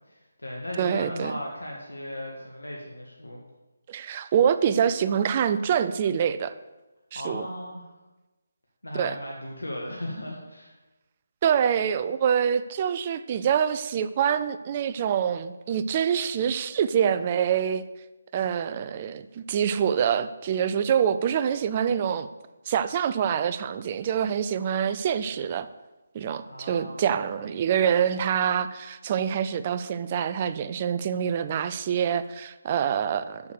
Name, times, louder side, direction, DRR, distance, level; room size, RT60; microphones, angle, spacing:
voice 1, 0.0-3.4 7.1-7.9 8.8-10.7 26.4-27.1, left 1 dB, 85° left, -1 dB, 1.7 m, -36 dB
voice 2, 0.8-1.3 3.9-6.5 7.1-7.5 8.9-9.2 11.4-17.8 18.3-22.3 22.7-25.7 26.1-33.4, right 8 dB, 30° right, 12 dB, 0.5 m, -25 dB
7.0 x 6.5 x 7.0 m, 1.1 s
figure-of-eight pair, 155°, 0 cm